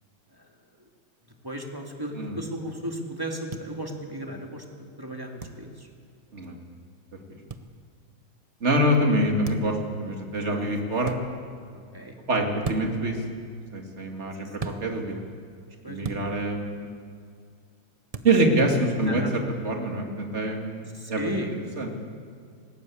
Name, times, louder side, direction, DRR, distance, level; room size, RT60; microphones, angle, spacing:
voice 1, 1.4-4.6 5.0-5.9 10.4-10.8 11.9-12.1 15.1-15.2 15.8-16.3 19.1-19.3 20.9-21.6, right 1 dB, 10° right, 1 dB, 2.0 m, -35 dB
sound 1, 3.5-3.6 5.4-5.6 7.5-7.7 9.4-9.8 11.0-11.2 12.6-13.0 14.6-14.8 16.0-16.3 18.1-18.3, right 4 dB, 50° right, 0.4 m, -34 dB
voice 2, 8.6-11.1 12.3-13.2 13.7-15.2 15.9-16.9 18.2-20.8 21.1-21.3 21.8-21.9, right 1 dB, 35° right, 2 dB, 2.5 m, -25 dB
20.0 x 18.0 x 8.6 m, 2.2 s
omnidirectional pair, 2.3 m